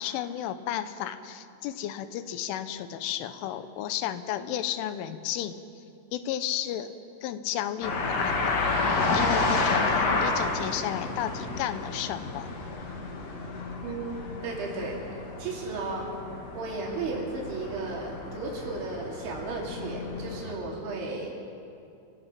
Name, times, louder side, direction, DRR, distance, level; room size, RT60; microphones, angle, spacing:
voice 1, 0.0-5.6 6.1-6.9 7.2-8.7 9.1-12.5, left 11 dB, 90° left, 11 dB, 3.4 m, -33 dB
sound 1, 7.8-20.5, left 3 dB, 50° left, 2.2 m, -30 dB
voice 2, 13.8-16.1 16.5-21.3, right 3 dB, 75° right, -2 dB, 4.9 m, -34 dB
28.0 x 18.0 x 6.0 m, 2.6 s
omnidirectional pair, 5.5 m